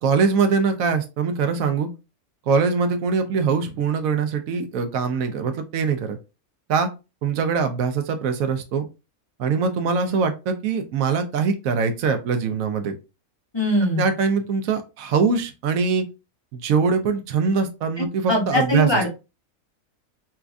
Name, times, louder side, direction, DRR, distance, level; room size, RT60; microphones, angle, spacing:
voice 1, 0.0-1.9 2.5-6.2 6.7-6.9 7.2-8.9 9.4-12.9 14.0-16.0 16.5-18.9, right 5 dB, 75° right, 7 dB, 1.0 m, -22 dB
voice 2, 13.5-14.1 18.0-19.1, left 1 dB, 25° left, -2 dB, 0.7 m, -22 dB
4.3 x 2.3 x 2.5 m, 0.28 s
omnidirectional pair, 1.5 m